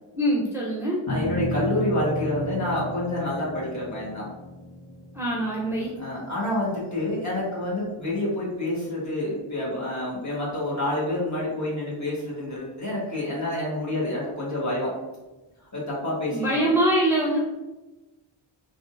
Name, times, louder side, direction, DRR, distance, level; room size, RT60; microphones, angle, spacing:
voice 1, 0.1-1.0 5.1-5.9 16.3-17.4, right 1 dB, 5° right, -6 dB, 0.6 m, -23 dB
sound 1, 1.1-7.6, right 1 dB, 50° left, 1.2 m, -34 dB
voice 2, 1.1-4.3 6.0-14.9 15.7-16.7, left 1 dB, 35° left, -6 dB, 1.4 m, -28 dB
3.5 x 2.5 x 2.5 m, 1.1 s
wide cardioid pair, 55°, 49 cm